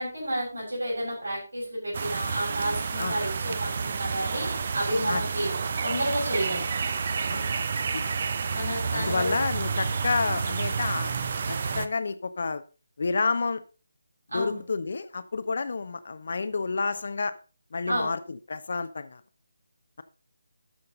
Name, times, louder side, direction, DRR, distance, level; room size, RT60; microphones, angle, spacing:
voice 1, 0.0-5.5 5.8-6.7 8.5-9.4 14.3-14.6 17.9-18.1, right 1 dB, 70° right, -2 dB, 6.5 m, -30 dB
sound 1, 1.9-11.9, right 5 dB, 40° right, 0.8 m, -30 dB
voice 2, 7.3-8.0 8.9-11.1 11.5-12.6 13.0-13.6 14.3-17.3 17.7-19.2, left 4 dB, 50° left, 12 dB, 0.8 m, -30 dB
12.5 x 6.9 x 3.8 m, 0.35 s
figure-of-eight pair, 155°, 0 cm